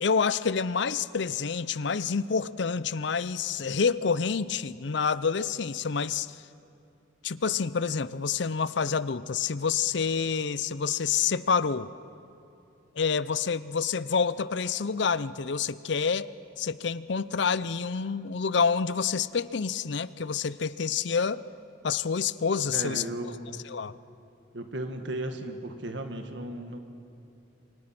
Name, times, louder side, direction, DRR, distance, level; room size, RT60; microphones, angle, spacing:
voice 1, 0.0-6.3 7.2-11.9 13.0-16.3 16.6-21.4 21.8-23.0 23.7-23.9, left 5 dB, 65° left, 0.6 m, -28 dB
voice 2, 22.7-23.6 24.5-26.8, right 1 dB, 65° right, 2.0 m, -35 dB
28.5 x 24.5 x 6.0 m
head